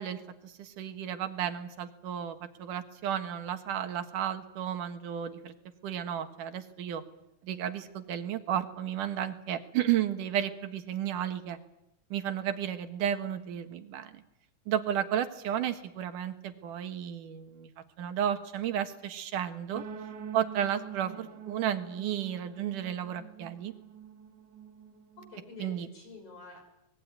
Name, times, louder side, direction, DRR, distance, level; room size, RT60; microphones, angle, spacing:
voice 1, 0.0-5.5 5.8-7.0 7.4-11.6 12.1-14.2 14.7-17.7 18.0-19.8 20.3-23.7 25.6-25.9, right 10 dB, 90° right, 8 dB, 3.1 m, -33 dB
sound 1, 19.7-25.6, right 7 dB, 60° right, 3.1 m, -46 dB
voice 2, 25.2-26.6, left 3 dB, 45° left, 4 dB, 7.0 m, -49 dB
24.0 x 21.0 x 9.4 m, 0.86 s
omnidirectional pair, 3.6 m